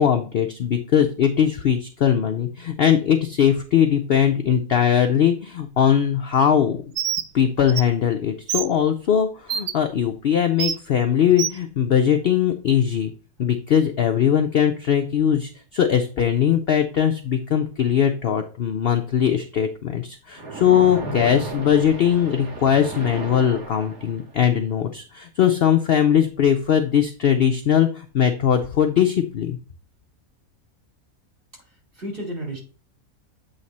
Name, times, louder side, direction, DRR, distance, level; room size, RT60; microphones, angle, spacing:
voice 1, 0.0-6.8 7.3-13.1 13.4-29.6, left 9 dB, 60° left, 6 dB, 0.6 m, -20 dB
Bird, 7.0-7.3 7.7-7.8 8.5-8.7 9.5-9.7 10.6-10.8 11.4-11.6, right 9 dB, 70° right, 0.5 m, -25 dB
Splash splatter, 20.3-24.4, right 2 dB, 90° right, 2.1 m, -34 dB
voice 2, 31.7-32.6, right 1 dB, 40° right, -2 dB, 2.7 m, -33 dB
7.9 x 3.2 x 4.1 m, 0.36 s
omnidirectional pair, 1.5 m